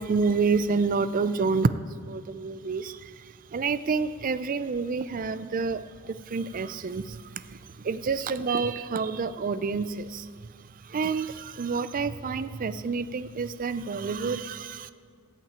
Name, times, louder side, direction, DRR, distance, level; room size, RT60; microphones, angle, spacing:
voice 1, 0.0-10.3 10.8-14.9, right 4 dB, 40° right, 13 dB, 0.4 m, -29 dB
14.0 x 5.9 x 8.8 m, 2.1 s
head